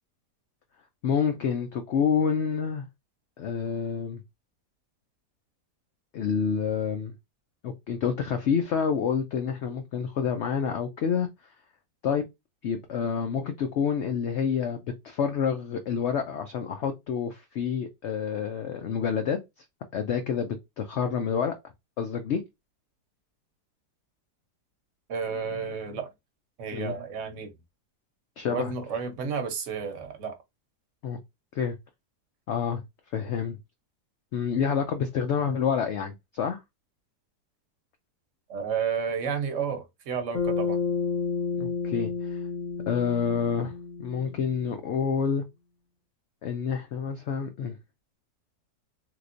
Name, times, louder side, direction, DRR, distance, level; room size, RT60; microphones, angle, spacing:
voice 1, 1.0-2.8 3.4-4.2 6.1-7.1 7.6-11.3 12.0-12.2 12.6-19.4 19.9-21.5 22.0-22.4 26.7-26.9 28.4-28.7 31.0-31.2 31.5-31.7 32.5-32.8 33.1-33.6 34.3-36.6 41.6-42.4 42.9-43.7 44.0-45.4 46.4-47.8, left 7 dB, 75° left, 0.6 m, -28 dB
voice 2, 25.1-26.1 26.6-27.5 28.5-30.4 38.5-40.8, right 6 dB, 55° right, 1.0 m, -31 dB
Bass guitar, 40.3-44.8, left 5 dB, 60° left, 1.1 m, -31 dB
3.2 x 2.9 x 2.5 m
omnidirectional pair, 1.7 m